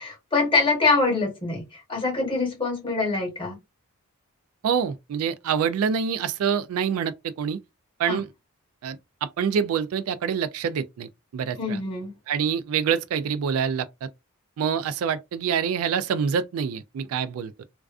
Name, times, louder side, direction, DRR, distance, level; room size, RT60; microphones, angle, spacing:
voice 1, 0.0-3.6 8.1-8.2 11.6-12.1, left 3 dB, 25° left, 0.9 m, -24 dB
voice 2, 4.6-7.6 8.0-8.3 8.8-11.8 12.3-14.1 14.6-17.6, right 7 dB, 70° right, 0.3 m, -26 dB
2.3 x 2.3 x 2.3 m
head